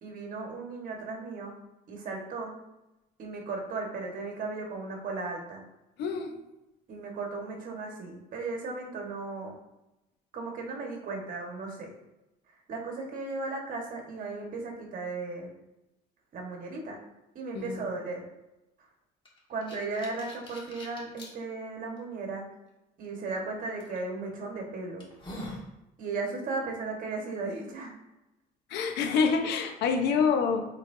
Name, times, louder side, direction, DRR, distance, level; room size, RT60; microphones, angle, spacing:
voice 1, 0.0-1.6 1.9-2.6 3.2-5.6 6.9-9.5 10.3-11.9 12.7-15.5 16.3-17.0 17.3-18.2 19.5-22.5 23.0-25.1 26.0-28.0, right 3 dB, 55° right, 1 dB, 1.6 m, -36 dB
voice 2, 6.0-6.3 17.5-17.9 28.7-30.7, left 5 dB, 80° left, 4 dB, 1.0 m, -26 dB
sound 1, 19.2-21.3 22.0-22.1 23.8-24.0 24.5-24.6 25.0-25.7, left 1 dB, 30° left, 1.7 m, -43 dB
8.1 x 4.4 x 2.8 m, 0.96 s
cardioid pair, 110°, 17 cm